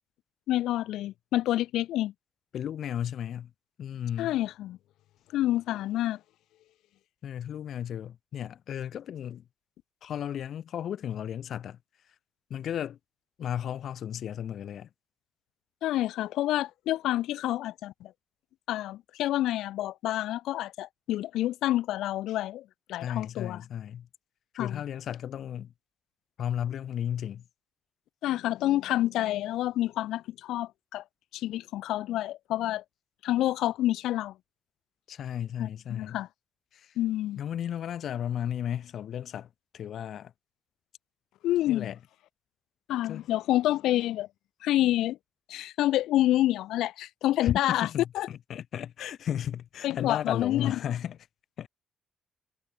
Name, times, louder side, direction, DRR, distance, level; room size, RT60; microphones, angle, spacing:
voice 1, 0.5-2.1 4.2-4.8 5.3-6.2 15.8-18.1 18.7-23.6 24.6-24.8 28.2-31.0 31.3-32.8 33.2-34.3 35.6-36.3 37.0-37.4 41.4-41.9 42.9-44.3 44.6-45.2 45.5-47.9 48.1-48.3 49.0-49.1 49.8-50.8, left 14 dB, 85° left, 0.4 m, -28 dB
voice 2, 2.5-3.5 3.8-4.3 7.2-9.4 10.0-11.8 12.5-13.0 13.4-14.9 23.0-24.1 24.5-25.7 26.4-27.4 35.1-36.2 37.4-39.5 39.7-40.3 41.7-42.0 43.1-43.2 47.4-51.2 51.6-51.7, left 9 dB, 65° left, 1.4 m, -34 dB
cardioid pair, 90°, 0 cm